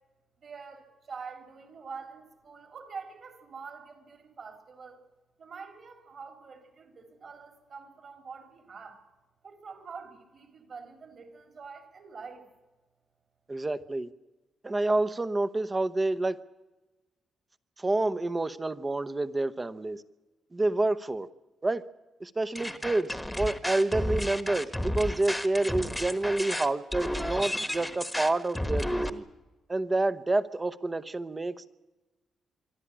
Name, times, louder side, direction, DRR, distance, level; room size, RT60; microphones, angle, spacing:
voice 1, 0.4-5.0 5.4-9.0 9.4-12.4, right 5 dB, 50° right, 6 dB, 3.8 m, -45 dB
voice 2, 13.5-14.1 14.6-16.4 17.8-20.0 20.5-21.3 21.6-21.8 22.2-29.2 29.7-31.7, right 2 dB, 20° right, 14 dB, 0.9 m, -28 dB
sound 1, 22.6-29.1, left 1 dB, 5° left, 1.3 m, -32 dB
24.5 x 13.0 x 9.9 m, 1.1 s
cardioid pair, 130°, 0 cm